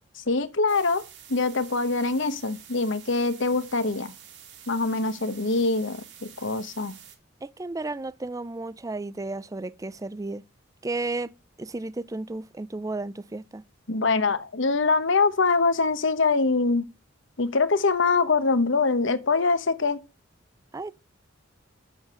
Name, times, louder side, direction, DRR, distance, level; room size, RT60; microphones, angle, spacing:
voice 1, 0.1-1.0 1.3-4.1 4.7-7.0 13.9-16.9 17.4-20.0, left 3 dB, 65° left, 1.0 m, -24 dB
sound 1, 0.7-7.2, right 9 dB, 60° right, 2.2 m, -48 dB
voice 2, 7.4-10.4 10.8-11.3 11.6-13.6 20.7-20.9, right 2 dB, 15° right, 0.4 m, -33 dB
7.5 x 7.2 x 4.8 m
head